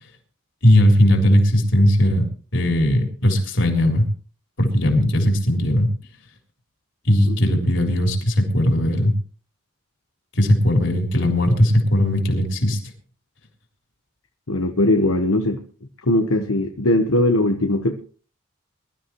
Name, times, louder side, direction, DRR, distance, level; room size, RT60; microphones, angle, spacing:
voice 1, 0.6-2.2 2.5-4.1 4.6-5.9 7.0-9.1 10.3-12.8, left 1 dB, 65° left, 2 dB, 3.8 m, -18 dB
voice 2, 14.5-15.6 16.0-17.9, left 1 dB, 90° left, 4 dB, 1.1 m, -20 dB
22.0 x 12.5 x 3.1 m, 0.40 s
head